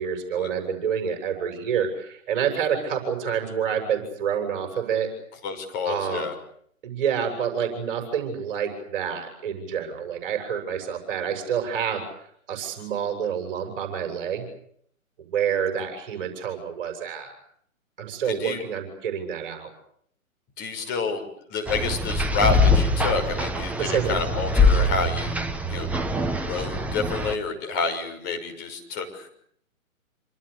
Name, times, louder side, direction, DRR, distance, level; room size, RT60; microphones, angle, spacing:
voice 1, 0.0-5.1 5.9-6.3 6.8-14.5 15.2-17.3 18.0-19.7 20.8-20.9 23.8-24.2, right 7 dB, 40° right, 5 dB, 7.3 m, -28 dB
voice 2, 5.4-6.3 18.2-18.6 20.6-21.2 21.5-25.4 25.7-25.9 26.4-29.3, left 4 dB, 25° left, 4 dB, 6.6 m, -29 dB
sound 1, 21.7-27.4, left 2 dB, 5° right, 1.1 m, -23 dB
28.0 x 26.5 x 6.9 m, 0.66 s
figure-of-eight pair, 130°, 42 cm